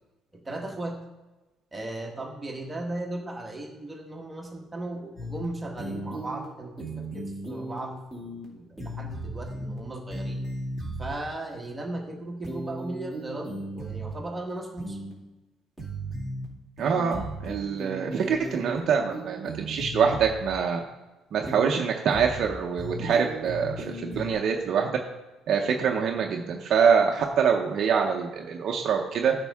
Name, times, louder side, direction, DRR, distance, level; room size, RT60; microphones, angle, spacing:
voice 1, 0.4-1.0 1.7-10.4 11.0-15.0, right 2 dB, 10° right, 0 dB, 1.3 m, -36 dB
sound 1, 5.2-5.4 5.8-6.4 6.8-7.8 8.1-8.4 8.8-9.8 10.1-11.1 12.4-14.1 14.8-15.1 15.8-16.4 16.8-18.8 19.1-20.5 21.4-21.8 22.1-22.4 22.8-24.3, right 1 dB, 10° left, 2.3 m, -36 dB
voice 2, 16.8-20.8 21.3-25.0 25.5-29.3, right 6 dB, 45° right, 1 dB, 0.7 m, -25 dB
13.5 x 5.2 x 3.6 m, 1.1 s
cardioid pair, 180°, 0 cm